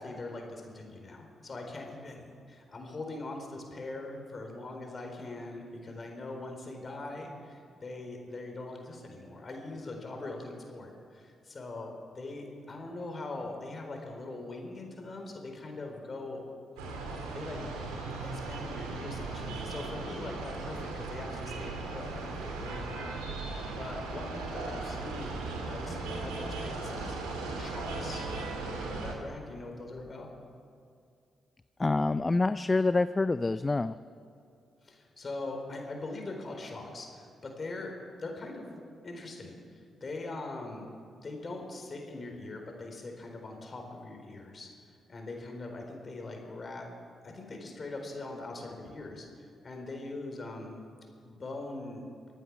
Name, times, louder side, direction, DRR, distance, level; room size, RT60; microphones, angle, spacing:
voice 1, 0.0-16.5 17.3-17.6 18.2-28.2 28.6-30.3 34.8-37.9 38.2-40.9 41.1-44.7 45.1-46.9 47.2-50.8 51.2-52.1, left 2 dB, 45° left, 2 dB, 4.2 m, -42 dB
sound 1, 16.8-29.1, right 3 dB, 90° right, 2.3 m, -37 dB
voice 2, 31.8-34.0, left 3 dB, 30° left, 13 dB, 0.4 m, -26 dB
25.5 x 9.0 x 6.3 m, 2.4 s
supercardioid pair, 45°, 0 cm